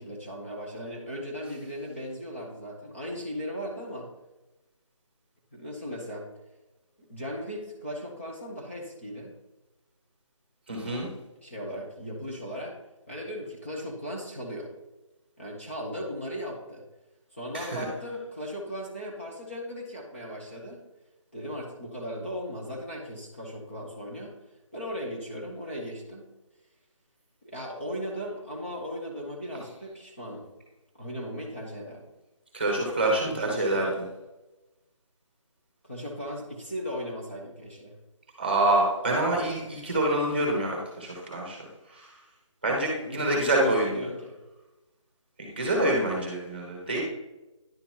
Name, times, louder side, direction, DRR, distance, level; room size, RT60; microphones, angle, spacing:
voice 1, 0.0-4.1 5.5-6.3 7.0-9.3 11.4-12.8 13.1-14.7 15.4-16.8 17.3-20.8 21.3-24.3 24.7-26.3 27.4-30.5 31.0-32.1 33.3-34.0 35.8-37.9 39.6-39.7 43.0-44.4, equal, 25° left, -4 dB, 0.8 m, -37 dB
voice 2, 10.7-11.1 17.5-17.9 32.5-34.0 38.4-41.6 41.9-42.1 42.6-43.9 45.4-47.0, right 1 dB, 20° right, 0 dB, 1.1 m, -26 dB
10.5 x 3.9 x 2.9 m, 1.0 s
figure-of-eight pair, 180°, 17 cm